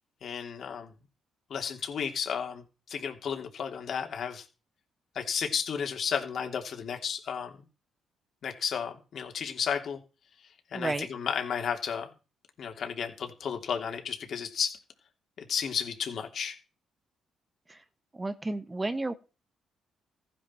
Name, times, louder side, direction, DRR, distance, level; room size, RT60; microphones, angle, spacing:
voice 1, 0.2-0.9 1.5-2.6 2.9-4.4 5.1-7.6 8.4-10.0 10.7-12.1 12.6-14.8 15.5-16.6, left 7 dB, 60° left, 4 dB, 3.0 m, -33 dB
voice 2, 10.7-11.1 17.7-17.8 18.1-19.1, right 2 dB, 20° right, 11 dB, 1.2 m, -32 dB
15.0 x 10.5 x 4.5 m, 0.33 s
cardioid pair, 90°, 0 cm